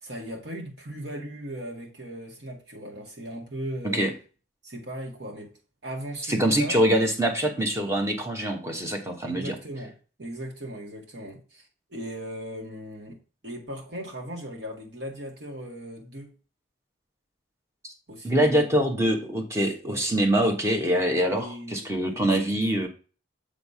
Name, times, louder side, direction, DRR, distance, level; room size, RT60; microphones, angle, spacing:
voice 1, 0.0-4.1 4.6-5.5 5.8-6.8 9.2-9.9 10.2-13.2 13.4-16.3 18.1-18.7 19.8-20.0 21.3-22.6, right 1 dB, 60° right, 1.8 m, -38 dB
voice 2, 6.3-9.5 17.8-17.9 18.2-22.9, right 1 dB, 15° right, 1.0 m, -24 dB
7.2 x 3.3 x 5.5 m
head